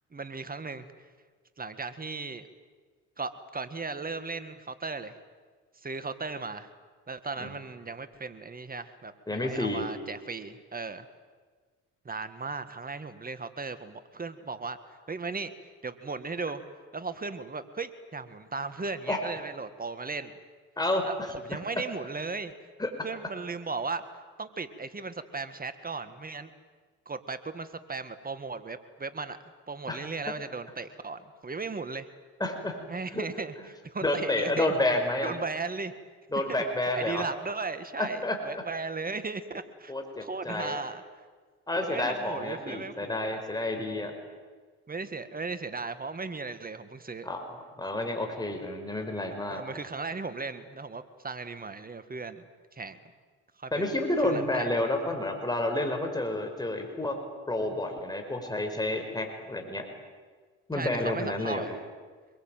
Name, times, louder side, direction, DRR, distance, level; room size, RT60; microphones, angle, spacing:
voice 1, 0.1-1.1 1.6-2.5 3.2-5.2 5.7-6.7 7.1-11.1 12.1-15.5 15.8-16.6 16.9-20.4 21.0-22.5 23.0-24.0 24.4-26.5 27.1-29.4 29.7-32.1 32.9-34.7 35.2-35.9 36.5-36.6 36.9-39.9 40.2-41.0 41.8-43.4 44.9-47.3 49.5-52.5 52.7-53.0 53.6-54.7 60.7-61.8, right 4 dB, 25° right, 11 dB, 1.9 m, -36 dB
voice 2, 9.3-9.8 19.1-19.2 20.8-21.0 21.5-21.6 22.8-22.9 29.9-30.0 32.4-32.7 33.1-33.3 34.0-35.3 36.3-37.2 38.0-38.4 39.9-40.8 41.7-44.1 47.2-49.6 53.7-57.2 57.5-59.8 60.7-61.6, left 1 dB, 10° left, 4 dB, 5.1 m, -30 dB
26.0 x 22.0 x 9.2 m, 1.5 s
supercardioid pair, 75°, 37 cm